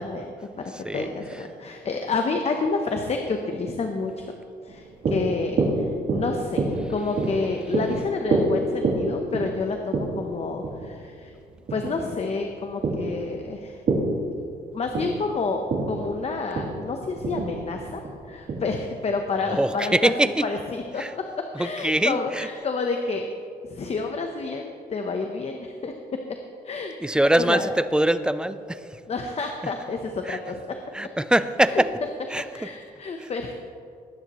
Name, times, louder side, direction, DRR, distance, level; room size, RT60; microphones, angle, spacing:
voice 1, 0.0-4.2 4.6-11.3 11.7-13.8 14.7-20.1 20.4-21.0 21.6-23.3 23.6-26.2 26.6-27.6 29.1-30.8 31.7-31.8 32.5-33.5, left 4 dB, 40° left, 4 dB, 0.9 m, -29 dB
sound 1, 4.7-19.2, right 2 dB, 60° right, 3.1 m, -28 dB
voice 2, 19.4-20.3 21.0-21.1 21.5-22.5 27.0-28.8 30.3-30.4 30.9-31.9 32.3-32.4 33.2-33.3, right 1 dB, 5° right, 12 dB, 0.4 m, -23 dB
20.0 x 9.8 x 3.1 m, 2.4 s
cardioid pair, 110°, 17 cm